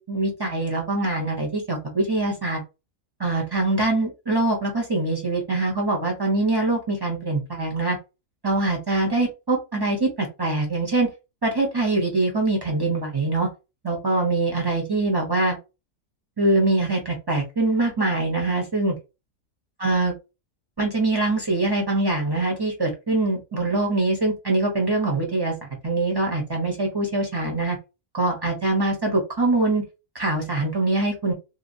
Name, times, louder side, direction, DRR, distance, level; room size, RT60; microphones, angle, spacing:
voice 1, 0.0-2.6 3.2-8.0 8.4-11.1 11.4-13.5 13.8-15.6 16.4-18.9 19.8-20.1 20.8-25.5 25.8-27.8 28.1-29.8 30.1-31.3, right 2 dB, 25° right, 0 dB, 0.7 m, -23 dB
2.8 x 2.3 x 2.6 m, 0.27 s
omnidirectional pair, 1.4 m